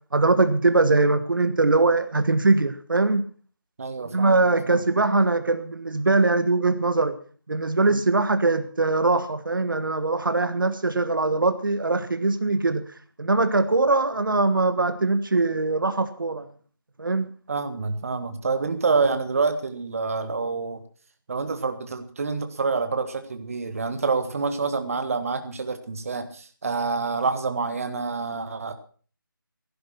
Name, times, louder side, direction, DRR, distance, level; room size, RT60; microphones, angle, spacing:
voice 1, 0.1-3.2 4.0-7.2 7.5-12.8 13.2-16.5 17.0-17.3, right 3 dB, 65° right, 10 dB, 1.5 m, -22 dB
voice 2, 3.8-4.8 7.9-8.0 17.5-20.8 21.3-28.7, right 4 dB, 40° right, 8 dB, 1.6 m, -27 dB
15.5 x 11.0 x 6.0 m, 0.42 s
figure-of-eight pair, 165°, 12 cm